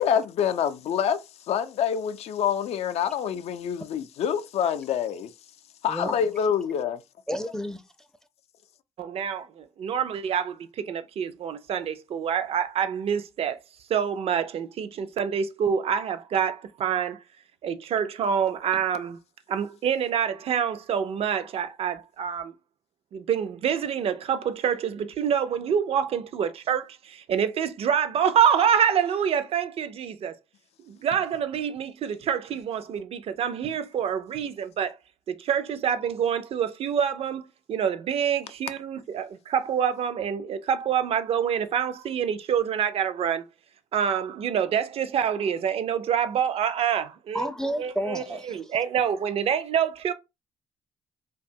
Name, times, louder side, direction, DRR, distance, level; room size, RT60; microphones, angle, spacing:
voice 1, 0.0-5.3 5.8-7.0, left 8 dB, 65° left, 0.4 m, -26 dB
voice 2, 7.3-8.1 47.3-48.8, equal, 5° left, 0.4 m, -31 dB
voice 3, 9.0-13.6 13.9-17.2 17.6-19.2 19.5-22.5 23.1-30.4 30.9-34.9 35.3-37.4 37.7-43.4 43.9-47.5 47.8-50.1, right 8 dB, 60° right, 0.4 m, -26 dB
2.7 x 2.3 x 2.6 m
supercardioid pair, 60°, 11 cm